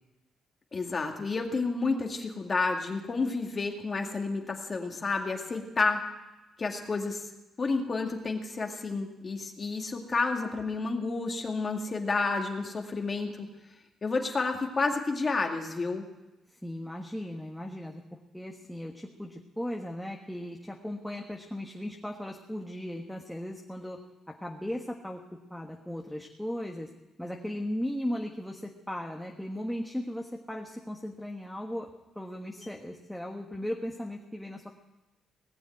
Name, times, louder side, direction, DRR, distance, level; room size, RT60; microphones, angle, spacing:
voice 1, 0.7-6.0 6.6-7.3 7.6-13.5 14.0-16.0 32.6-32.7, left 3 dB, 35° left, 2 dB, 2.1 m, -30 dB
voice 2, 16.6-18.0 18.3-24.0 24.4-25.2 25.5-26.9 27.2-31.9 32.1-34.7, left 1 dB, 5° left, 0 dB, 1.4 m, -37 dB
19.0 x 7.2 x 9.2 m, 1.0 s
cardioid pair, 90°, 0 cm